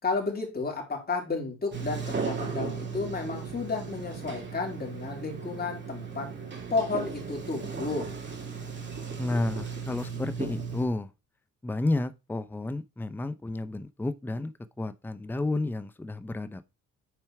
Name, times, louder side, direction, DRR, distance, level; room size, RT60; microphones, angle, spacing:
voice 1, 0.0-6.4 6.7-8.1, left 4 dB, 30° left, 3.7 m, -32 dB
Sliding door, 1.7-10.9, right 5 dB, 35° right, 2.9 m, -36 dB
voice 2, 9.2-11.1 11.6-16.7, left 2 dB, 5° left, 0.6 m, -31 dB
9.4 x 4.4 x 4.6 m
cardioid pair, 90°, 30 cm